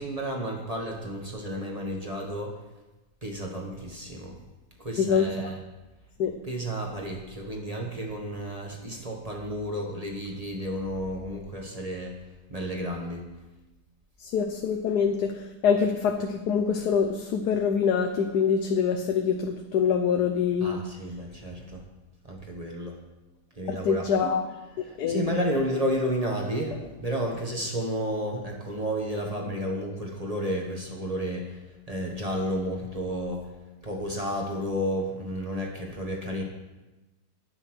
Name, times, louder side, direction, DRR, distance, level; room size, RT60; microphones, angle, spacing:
voice 1, 0.0-2.6 3.2-4.4 4.8-5.6 6.4-12.2 12.5-13.3 20.6-21.8 22.2-23.0 23.5-24.3 24.8-33.5 33.8-36.4, equal, 25° right, 0 dB, 1.6 m, -32 dB
voice 2, 14.2-20.8 23.7-24.4 25.0-25.4, left 6 dB, 75° left, 5 dB, 1.4 m, -25 dB
9.8 x 9.5 x 6.2 m, 1.1 s
omnidirectional pair, 1.7 m